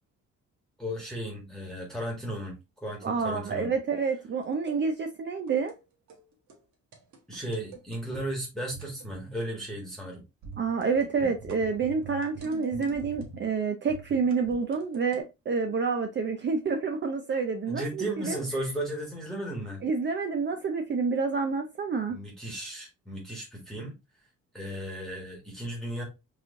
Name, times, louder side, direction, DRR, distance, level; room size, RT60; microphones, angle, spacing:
voice 1, 0.8-2.6 2.8-3.7 7.3-10.2 17.7-19.8 22.1-24.0 24.5-26.0, right 1 dB, ahead, 1.5 m, -35 dB
voice 2, 3.0-5.7 10.6-18.4 19.8-22.2, right 5 dB, 40° right, 0.6 m, -28 dB
sound 1, 4.4-4.8 5.5-5.8 6.1-6.2 6.5-6.6 6.9-8.3 8.7-9.3 9.6-9.8 10.4-13.5 13.9-15.2, right 5 dB, 70° right, 1.3 m, -45 dB
4.7 x 3.1 x 2.4 m
cardioid pair, 90°, 30 cm